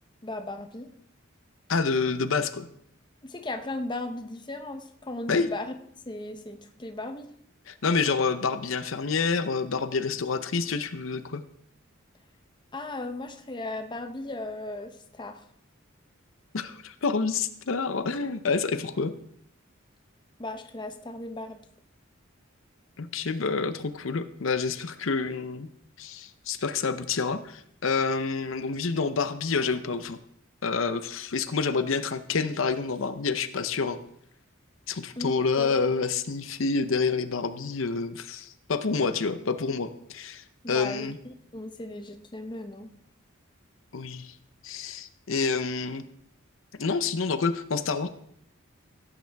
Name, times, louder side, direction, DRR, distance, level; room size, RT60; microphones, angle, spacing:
voice 1, 0.2-0.9 3.2-5.7 6.1-7.3 12.7-15.4 20.4-21.7 35.2-35.8 40.6-42.9, left 2 dB, 20° left, 7 dB, 0.8 m, -36 dB
voice 2, 1.7-2.7 5.3-5.5 7.7-11.4 16.5-19.1 23.0-25.7 26.0-30.2 30.6-34.0 34.9-41.2 43.9-44.3 44.6-46.0 46.8-48.1, left 4 dB, 75° left, 11 dB, 0.7 m, -28 dB
16.5 x 9.0 x 3.5 m, 0.71 s
head